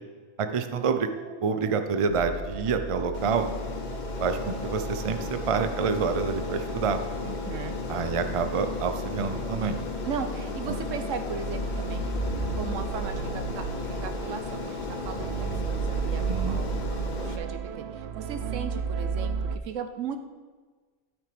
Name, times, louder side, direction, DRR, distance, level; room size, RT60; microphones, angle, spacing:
voice 1, 0.4-1.1 1.4-3.5 4.2-7.0 7.9-9.8 16.3-16.6, right 5 dB, 40° right, 8 dB, 0.5 m, -27 dB
sound 1, 0.7-19.6, right 7 dB, 65° right, 0.8 m, -36 dB
sound 2, 2.1-17.1, equal, 60° left, 2.1 m, -37 dB
Aircraft, 3.1-17.4, left 5 dB, 45° left, 0.7 m, -36 dB
voice 2, 7.2-7.8 10.0-12.1 12.5-16.7 17.2-20.2, right 6 dB, 80° right, 8 dB, 1.2 m, -37 dB
13.0 x 6.3 x 5.1 m, 1.4 s
omnidirectional pair, 1.3 m